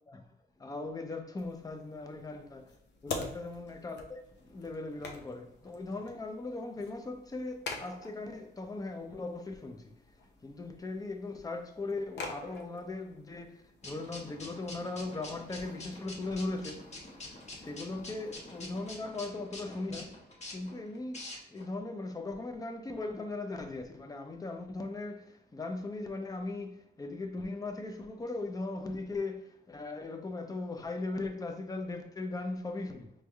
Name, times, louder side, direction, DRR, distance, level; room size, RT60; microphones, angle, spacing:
voice 1, 0.6-2.8 3.0-9.9 10.4-16.9 17.6-20.2 20.5-33.1, left 2 dB, 20° left, 0.5 m, -39 dB
sound 1, 1.4-19.0, left 3 dB, 90° left, 0.6 m, -48 dB
sound 2, 13.8-21.7, left 2 dB, 40° left, 1.0 m, -47 dB
5.2 x 3.2 x 2.3 m
wide cardioid pair, 125°, 18 cm